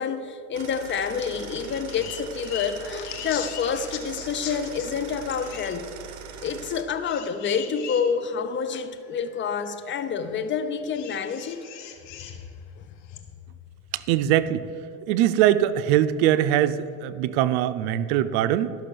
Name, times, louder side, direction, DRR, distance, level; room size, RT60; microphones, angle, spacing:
voice 1, 0.0-5.9 6.4-11.6 12.8-12.9, left 6 dB, 35° left, 10 dB, 0.8 m, -28 dB
sound 1, 0.5-6.8, right 7 dB, 55° right, 1.2 m, -41 dB
sound 2, 1.2-1.3 1.6-4.9 5.3-5.7 7.0-8.0 8.8-8.9 10.9-12.4 13.1-13.2, left 10 dB, 65° left, 1.4 m, -39 dB
voice 2, 13.9-14.7 15.1-18.8, right 12 dB, 75° right, 14 dB, 0.6 m, -22 dB
12.0 x 6.2 x 6.8 m, 2.5 s
supercardioid pair, 110°, 34 cm